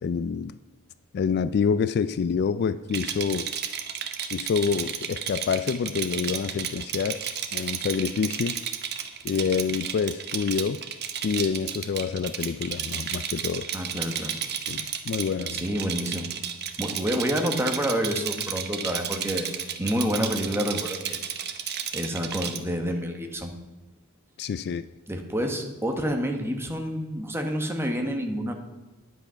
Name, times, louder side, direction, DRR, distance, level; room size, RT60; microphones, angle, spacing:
voice 1, 0.0-0.5 1.1-3.5 4.3-7.2 7.5-8.6 9.2-10.8 11.2-13.7 14.7-15.7 24.4-24.9, left 6 dB, 50° left, 0.3 m, -27 dB
Rattle, 2.9-22.6, right 8 dB, 50° right, 1.0 m, -32 dB
voice 2, 13.7-14.3 15.5-16.3 16.8-19.5 19.8-21.3 21.9-23.5 25.1-28.5, equal, 10° right, 1.2 m, -28 dB
10.5 x 9.0 x 5.7 m
head